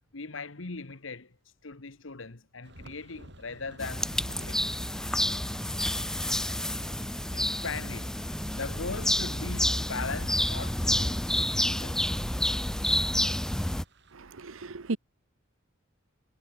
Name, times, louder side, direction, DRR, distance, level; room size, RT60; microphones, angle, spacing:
voice 1, 0.1-4.1 4.5-4.7 7.2-8.1 8.5-12.0, left 4 dB, 70° left, 1.4 m, -39 dB
sound 1, 2.6-14.1, right 1 dB, 60° right, 5.5 m, -51 dB
sound 2, 3.8-13.8, left 1 dB, 5° left, 0.4 m, -29 dB
voice 2, 14.2-15.0, right 3 dB, 85° right, 0.9 m, -35 dB
head